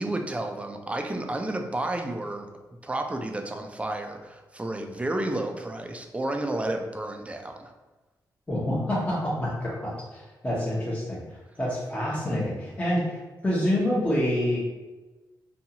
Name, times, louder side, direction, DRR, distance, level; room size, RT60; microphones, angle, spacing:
voice 1, 0.0-2.5 2.8-7.7, right 1 dB, 15° right, 4 dB, 0.4 m, -31 dB
voice 2, 8.5-14.6, left 1 dB, 15° left, -6 dB, 0.8 m, -27 dB
2.6 x 2.3 x 2.8 m, 1.2 s
cardioid pair, 70°, 8 cm